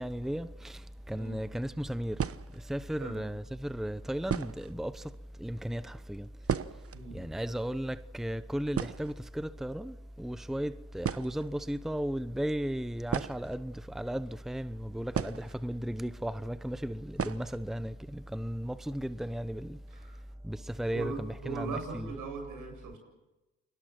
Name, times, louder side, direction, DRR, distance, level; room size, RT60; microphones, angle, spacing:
voice 1, 0.0-6.3 6.7-6.8 7.1-19.8 20.4-22.1, equal, ahead, 0.9 m, -35 dB
sound 1, 1.2-1.3 2.1-2.8 3.7-3.8 4.2-4.8 5.1-5.2 5.4-5.6 6.0-7.0 7.3-7.4 7.7-8.0 8.3-8.4 8.7-9.6 10.6-10.7 11.0-11.6 13.0-14.1 15.1-15.9 16.2-16.3 17.1-17.6 17.9-18.0 18.4-18.5 18.9-19.3, right 7 dB, 45° right, 1.0 m, -35 dB
voice 2, 6.9-7.2 19.9-20.2 20.9-23.0, right 4 dB, 75° right, 7.7 m, -39 dB
29.5 x 22.0 x 6.1 m
supercardioid pair, 60°, 32 cm